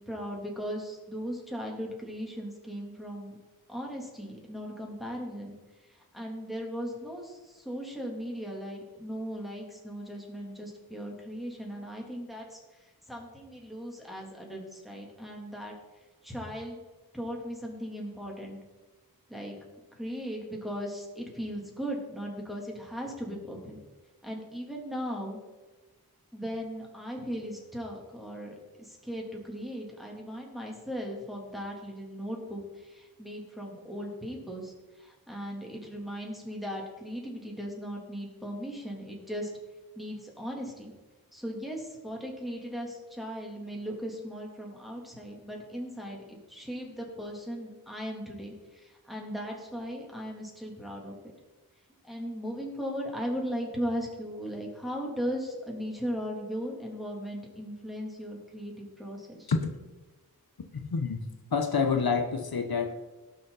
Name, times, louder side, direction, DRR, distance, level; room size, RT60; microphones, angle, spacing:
voice 1, 0.0-3.4 3.7-5.5 5.9-15.8 16.2-16.8 17.1-18.6 19.3-19.6 19.9-23.8 24.2-25.4 26.3-39.5 39.9-40.9 41.3-51.2 52.0-59.5, equal, ahead, -1 dB, 3.2 m, -38 dB
voice 2, 60.7-61.2 61.5-62.9, left 5 dB, 75° left, 5 dB, 1.0 m, -28 dB
17.5 x 6.4 x 4.1 m, 1.2 s
wide cardioid pair, 50°, 37 cm